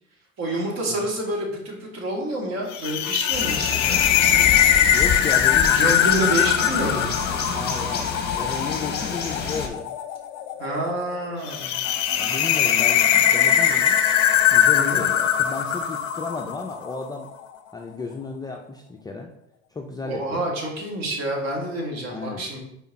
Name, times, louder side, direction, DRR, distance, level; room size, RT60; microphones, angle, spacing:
voice 1, 0.4-4.0 5.7-7.1 10.6-11.8 14.7-15.1 20.0-22.6, right 1 dB, 40° right, -1 dB, 2.3 m, -28 dB
sound 1, 2.7-17.1, left 10 dB, 45° left, 0.8 m, -21 dB
sound 2, 3.3-9.7, left 6 dB, 25° left, 1.3 m, -28 dB
voice 2, 4.9-5.7 7.6-9.9 12.1-14.0 14.5-17.3 17.7-19.3 19.7-20.4 22.1-22.5, left 4 dB, 10° left, 2 dB, 0.4 m, -34 dB
5.5 x 4.5 x 4.3 m, 0.78 s
hypercardioid pair, 90°, 38 cm